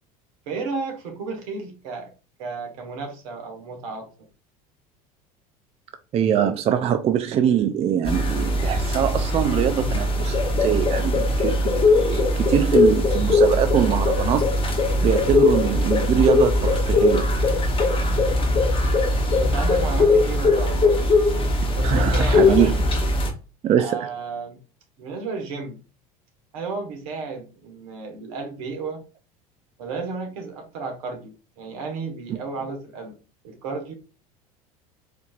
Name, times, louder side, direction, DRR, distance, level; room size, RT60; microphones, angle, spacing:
voice 1, 0.5-2.1 2.4-4.1 18.3-18.5 19.4-21.0 21.8-22.8 23.8-24.6 25.0-25.8 26.5-29.0 29.8-33.2 33.4-33.9, right 4 dB, 70° right, 1.2 m, -33 dB
voice 2, 6.1-14.4 15.0-17.3 21.8-22.7 23.6-24.0, right 9 dB, 35° right, 0.4 m, -23 dB
sound 1, 8.1-23.3, left 2 dB, 30° left, 1.0 m, -20 dB
4.3 x 2.8 x 2.3 m
hypercardioid pair, 75°, 19 cm